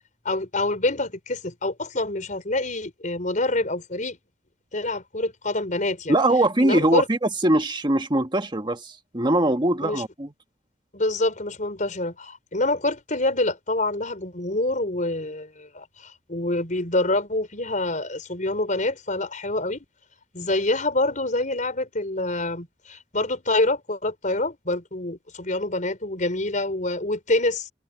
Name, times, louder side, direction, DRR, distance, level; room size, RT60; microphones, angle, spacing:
voice 1, 0.2-4.2 4.7-6.2 6.6-7.1 9.8-10.0 10.9-19.8 20.3-27.7, left 2 dB, 45° left, 4.9 m, -26 dB
voice 2, 6.1-10.3, right 1 dB, 25° right, 1.5 m, -22 dB
head